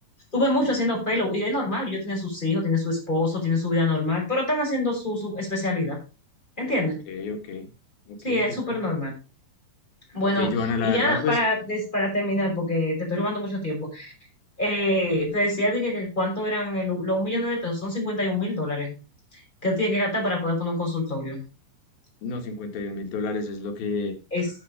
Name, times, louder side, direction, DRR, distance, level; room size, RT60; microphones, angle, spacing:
voice 1, 0.3-6.0 6.6-7.0 8.2-9.1 10.1-10.5 10.8-14.1 14.6-19.0 19.3-21.4 24.3-24.5, left 1 dB, 10° left, -2 dB, 5.7 m, -25 dB
voice 2, 7.1-7.7 8.1-8.8 10.2-11.4 22.2-24.2, left 4 dB, 85° left, 4 dB, 3.7 m, -29 dB
11.0 x 7.5 x 5.1 m, 0.31 s
omnidirectional pair, 4.1 m